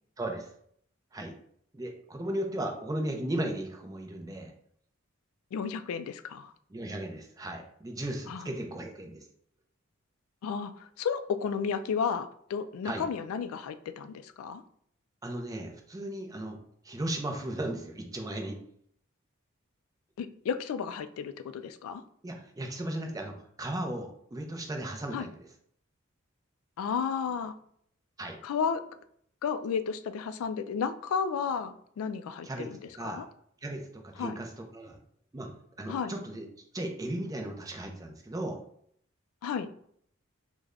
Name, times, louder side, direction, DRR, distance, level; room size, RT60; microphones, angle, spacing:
voice 1, 0.2-0.5 1.1-1.3 1.7-4.5 6.7-9.2 12.8-13.0 15.2-16.6 16.8-18.6 22.2-25.5 28.2-28.4 32.4-32.7 32.9-33.2 33.6-35.0 35.3-35.5 35.8-36.5 36.7-38.6, right 1 dB, 15° right, 3 dB, 0.4 m, -36 dB
voice 2, 5.5-6.5 8.3-8.5 10.4-10.7 11.0-14.6 20.2-22.0 25.1-25.3 26.8-27.5 28.4-28.8 29.4-33.3 34.2-34.4 35.9-36.1 39.4-39.7, left 6 dB, 85° left, 14 dB, 0.3 m, -33 dB
3.3 x 2.1 x 3.5 m, 0.66 s
head